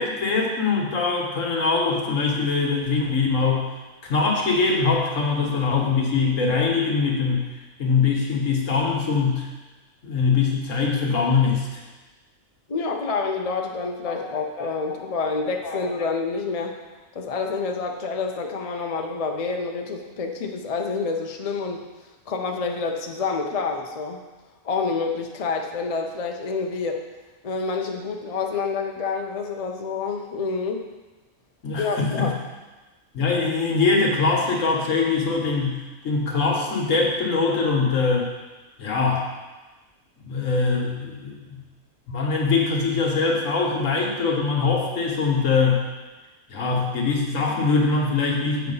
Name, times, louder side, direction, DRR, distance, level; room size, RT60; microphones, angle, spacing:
voice 1, 0.0-3.6 4.0-7.5 7.8-9.5 10.0-11.8 14.1-14.7 15.1-15.8 31.6-32.3 33.1-38.3 38.8-39.3 40.2-41.6 42.1-45.8 46.5-48.7, left 4 dB, 70° left, -1 dB, 1.5 m, -23 dB
voice 2, 12.7-16.7 17.1-21.8 22.3-24.2 24.6-27.0 27.4-30.9 31.8-32.3, left 4 dB, 40° left, 2 dB, 0.5 m, -28 dB
8.0 x 4.3 x 5.5 m, 1.2 s
omnidirectional pair, 1.4 m